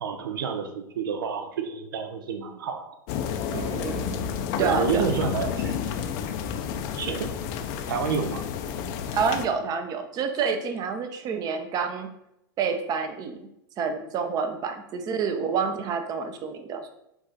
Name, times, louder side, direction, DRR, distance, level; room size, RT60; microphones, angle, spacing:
voice 1, 0.0-3.0 4.6-5.7 6.2-6.3 7.0-7.5 7.9-8.4, right 6 dB, 75° right, 6 dB, 0.5 m, -29 dB
sound 1, 3.1-9.5, left 7 dB, 50° left, 0.5 m, -31 dB
voice 2, 3.5-4.3 4.6-5.1 9.1-12.1 12.6-13.4 13.8-16.9, right 6 dB, 35° right, 7 dB, 0.6 m, -28 dB
4.8 x 2.5 x 3.9 m, 0.82 s
hypercardioid pair, 100°, 11 cm